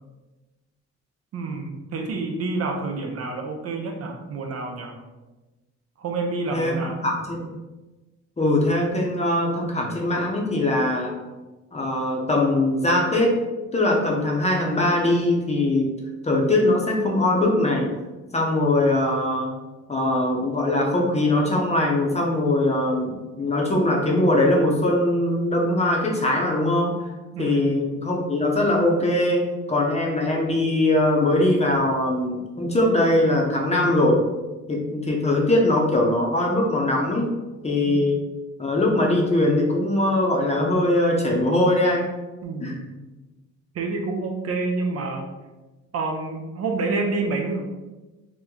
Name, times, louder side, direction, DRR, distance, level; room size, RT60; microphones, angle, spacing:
voice 1, 1.3-5.0 6.0-7.0 27.4-27.8 37.9-38.1 42.4-42.9 43.7-45.3 45.9-47.6, right 3 dB, 55° right, 3 dB, 0.5 m, -28 dB
voice 2, 7.0-7.5 8.4-11.2 11.7-13.4 13.7-15.9 16.2-17.9 18.3-19.5 19.9-26.9 27.4-34.2 34.7-37.3 37.6-38.2 38.6-42.1 42.6-42.8, left 1 dB, 20° left, -1 dB, 0.7 m, -21 dB
3.0 x 2.1 x 3.7 m, 1.1 s
cardioid pair, 90°, 30 cm